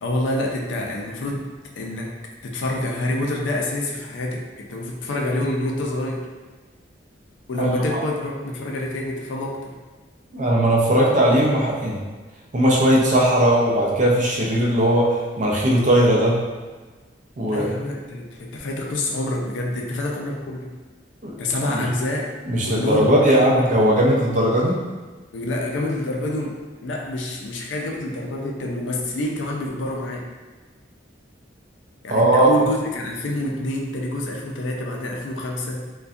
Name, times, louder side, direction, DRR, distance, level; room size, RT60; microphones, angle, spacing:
voice 1, 0.0-1.5 1.8-2.1 2.4-6.3 7.5-9.7 17.5-20.7 21.4-22.3 22.6-23.8 25.3-30.3 32.0-35.9, left 1 dB, 75° left, 0 dB, 0.4 m, -27 dB
voice 2, 7.6-8.0 10.3-12.0 12.5-16.4 17.4-17.7 21.2-21.3 21.7-21.8 22.5-24.8 32.1-32.5, right 1 dB, 40° right, -3 dB, 0.4 m, -18 dB
2.6 x 2.2 x 2.3 m, 1.3 s
head